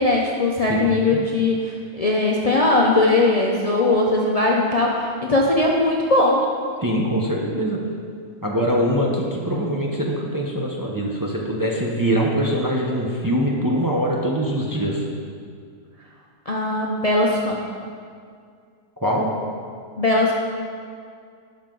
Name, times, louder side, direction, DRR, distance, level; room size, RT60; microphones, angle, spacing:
voice 1, 0.0-6.4 16.5-17.6 20.0-20.3, left 2 dB, 40° left, -3 dB, 0.6 m, -19 dB
voice 2, 0.6-1.2 6.8-7.8 8.4-15.0 19.0-19.3, equal, 20° right, -2 dB, 0.7 m, -23 dB
12.0 x 5.8 x 3.9 m, 2.2 s
omnidirectional pair, 1.4 m